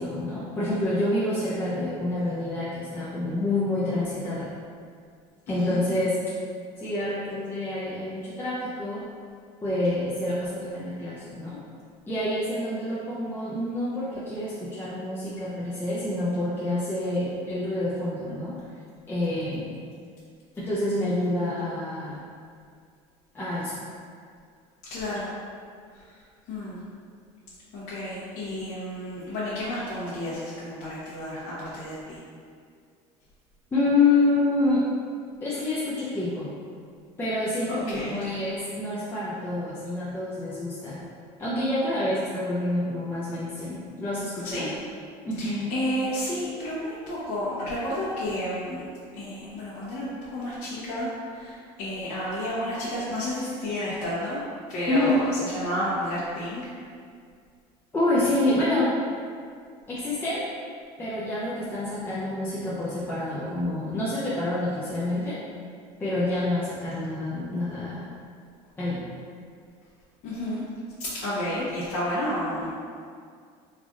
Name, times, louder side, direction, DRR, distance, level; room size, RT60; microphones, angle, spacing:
voice 1, 0.0-4.5 5.5-6.2 6.8-9.1 9.6-11.6 12.1-18.6 19.1-19.7 20.6-22.2 23.3-23.8 33.7-34.8 35.4-36.5 37.2-41.0 41.4-44.7 45.2-45.7 54.9-55.2 57.9-58.9 59.9-60.5 61.0-65.4 66.0-68.1 68.8-69.1, left 2 dB, 15° left, -9 dB, 0.5 m, -27 dB
voice 2, 5.5-5.8 24.9-25.3 26.5-26.8 27.7-32.2 37.7-38.2 44.4-44.7 45.4-48.8 49.1-54.4 54.7-56.7 70.2-70.6 71.1-72.7, left 1 dB, 60° left, -11 dB, 1.0 m, -31 dB
3.3 x 2.5 x 3.6 m, 2.2 s
cardioid pair, 140°, 14 cm